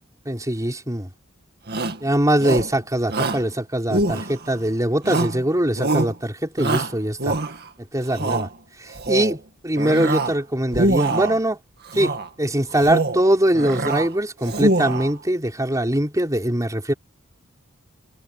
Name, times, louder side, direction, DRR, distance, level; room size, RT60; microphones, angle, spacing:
voice 1, 0.2-1.1 2.0-7.4 7.9-8.5 8.8-11.6 11.9-16.9, right 1 dB, 15° right, 4.9 m, -22 dB
Shout, 1.7-2.0 2.4-2.8 3.1-3.5 3.9-4.6 5.0-5.4 5.8-6.1 6.6-7.7 8.1-8.5 8.9-9.4 9.8-10.4 10.7-11.4 11.9-12.3 12.7-13.2 13.5-14.1 14.4-15.1, right 2 dB, 50° right, 2.2 m, -24 dB
head